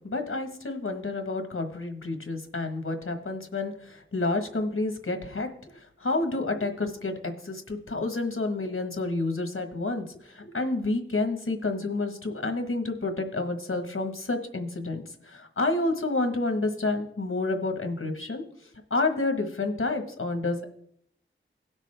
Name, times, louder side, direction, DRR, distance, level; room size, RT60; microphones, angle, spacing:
voice 1, 0.0-18.4 18.9-20.7, left 2 dB, 90° left, 6 dB, 1.3 m, -29 dB
17.5 x 6.2 x 3.3 m, 0.69 s
wide cardioid pair, 45°, 21 cm